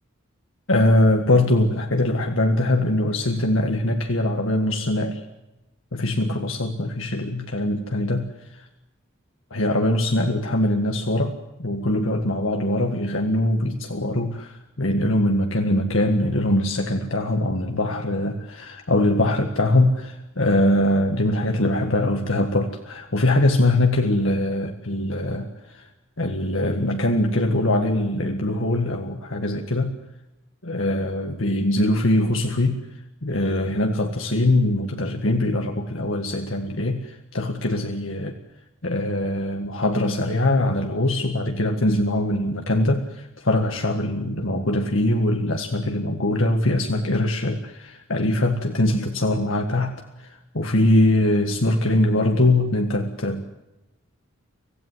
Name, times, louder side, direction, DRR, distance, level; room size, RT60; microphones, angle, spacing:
voice 1, 0.7-5.2 5.9-8.7 9.5-25.9 26.2-30.0 30.6-32.8 33.2-38.4 38.8-53.6, left 1 dB, 70° left, 3 dB, 1.8 m, -22 dB
25.5 x 16.5 x 9.5 m, 0.94 s
head